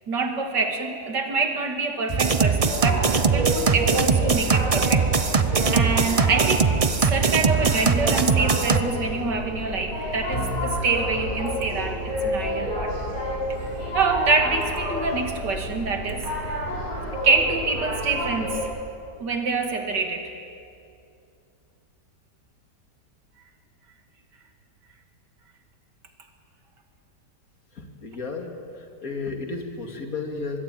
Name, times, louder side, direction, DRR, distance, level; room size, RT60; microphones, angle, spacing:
voice 1, 0.1-5.1 5.7-6.7 7.0-13.1 13.9-16.3 17.2-18.7 19.2-20.3, right 4 dB, 90° right, 4 dB, 2.9 m, -26 dB
sound 1, 2.1-8.8, right 5 dB, 35° right, 0.5 m, -21 dB
sound 2, 2.6-18.6, equal, 75° left, 7.6 m, -30 dB
sound 3, 10.3-20.4, equal, 30° left, 5.0 m, -40 dB
voice 2, 27.7-30.6, left 3 dB, 55° left, 3 dB, 2.9 m, -33 dB
25.0 x 21.5 x 9.1 m, 2.5 s
omnidirectional pair, 1.8 m